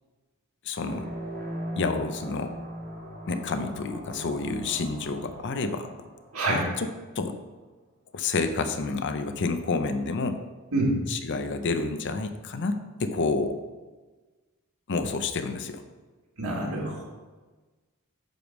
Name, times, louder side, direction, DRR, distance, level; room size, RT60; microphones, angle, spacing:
voice 1, 0.6-1.1 1.8-2.5 3.3-5.9 6.5-7.4 8.1-10.4 11.1-13.6 14.9-15.8, left 3 dB, 55° left, 8 dB, 0.6 m, -29 dB
sound 1, 0.8-7.0, right 1 dB, 45° right, 1.2 m, -39 dB
voice 2, 16.4-17.0, right 2 dB, 70° right, -2 dB, 2.1 m, -26 dB
9.0 x 3.5 x 5.9 m, 1.3 s
head